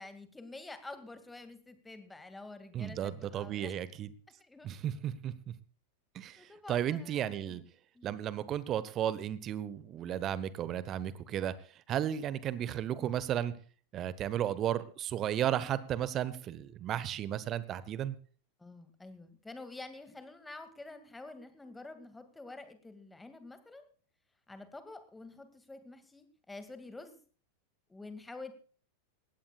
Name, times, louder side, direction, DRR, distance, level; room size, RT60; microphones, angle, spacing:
voice 1, 0.0-3.7 4.4-4.7 6.4-7.7 7.9-8.2 18.6-23.9 24.5-27.2 27.9-28.5, left 2 dB, 10° left, 9 dB, 2.2 m, -48 dB
voice 2, 2.7-4.1 4.6-5.3 6.1-6.4 6.7-7.6 8.0-11.5 11.9-13.5 13.9-18.1, right 10 dB, 30° right, 17 dB, 1.0 m, -34 dB
19.5 x 16.5 x 2.4 m, 0.41 s
figure-of-eight pair, 90°, 0 cm